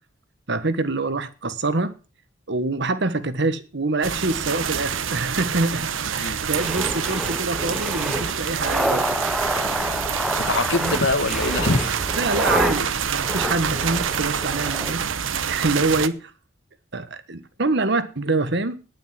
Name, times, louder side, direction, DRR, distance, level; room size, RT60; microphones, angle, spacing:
voice 1, 0.5-1.9 2.5-5.9 6.2-9.1 10.7-11.0 12.2-15.0 15.5-16.3 16.9-18.8, right 3 dB, 60° right, 1.4 m, -25 dB
sound 1, 4.0-16.1, right 7 dB, 85° right, 0.9 m, -27 dB
voice 2, 6.2-6.7 7.0-7.1 10.4-12.2, left 2 dB, 65° left, 1.4 m, -25 dB
sound 2, 6.4-14.9, equal, ahead, 0.9 m, -28 dB
10.5 x 9.4 x 7.5 m
head